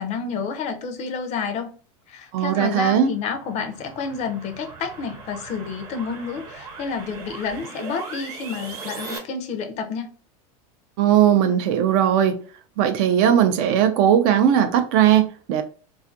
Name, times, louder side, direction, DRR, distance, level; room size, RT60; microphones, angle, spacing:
voice 1, 0.0-1.7 2.1-10.1, left 5 dB, 35° left, 0.4 m, -29 dB
voice 2, 2.3-3.1 11.0-12.4 12.8-15.6, right 9 dB, 55° right, 0.4 m, -18 dB
sound 1, 2.9-9.2, right 4 dB, 85° right, 0.9 m, -39 dB
2.5 x 2.4 x 2.5 m
supercardioid pair, 135°, 19 cm